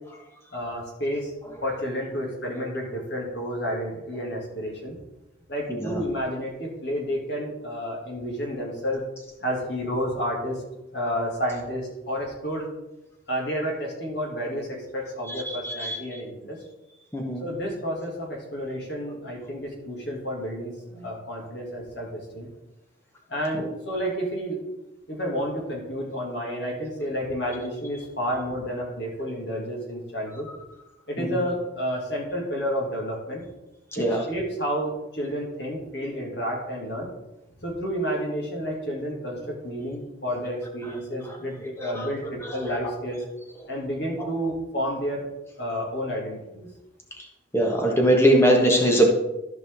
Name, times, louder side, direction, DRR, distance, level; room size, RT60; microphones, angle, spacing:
voice 1, 0.5-1.3 1.6-5.0 5.5-9.0 9.4-10.6 10.9-12.7 13.3-16.6 17.4-22.5 23.3-24.6 25.1-30.5 31.1-33.4 33.9-37.1 37.6-43.2 43.7-45.2 45.6-46.7, equal, 60° left, -2 dB, 2.6 m, -30 dB
voice 2, 15.5-16.0 17.1-17.4 31.2-31.3 34.0-34.2 41.8-42.1 42.4-42.5 47.5-49.1, right 1 dB, 15° left, 1 dB, 1.4 m, -21 dB
13.5 x 5.2 x 3.7 m, 0.96 s
head